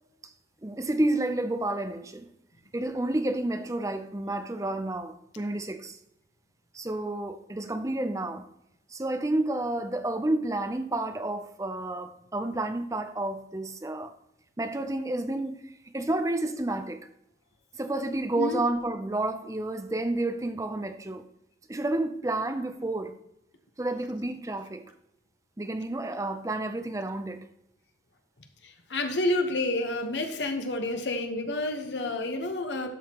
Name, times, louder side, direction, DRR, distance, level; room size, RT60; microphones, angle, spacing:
voice 1, 0.6-2.3 2.7-6.0 6.7-8.5 8.9-14.2 14.6-17.1 17.7-21.3 21.7-23.2 23.8-24.9 25.6-27.5, right 2 dB, 20° right, 0.5 m, -30 dB
voice 2, 28.6-32.9, left 2 dB, 80° left, 1.1 m, -29 dB
12.0 x 6.4 x 3.0 m
head